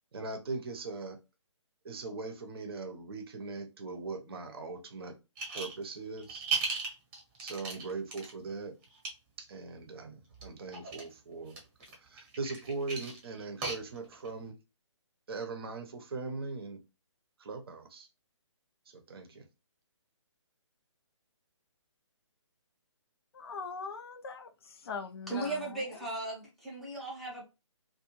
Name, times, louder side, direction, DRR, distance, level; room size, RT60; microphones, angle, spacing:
voice 1, 0.1-1.2 1.8-5.2 5.5-6.5 7.4-8.7 9.4-11.6 12.0-14.6 15.3-16.8 17.4-18.1 18.9-19.5, right 3 dB, 50° right, 0.7 m, -40 dB
sound 1, 5.4-5.8 6.2-8.3 8.8-9.1 10.3-11.1 11.5-14.3, right 4 dB, 25° right, 0.8 m, -36 dB
voice 2, 23.3-25.9, left 5 dB, 50° left, 0.4 m, -41 dB
voice 3, 25.3-27.4, right 2 dB, ahead, 0.6 m, -37 dB
2.4 x 2.2 x 2.9 m
figure-of-eight pair, 145°, 16 cm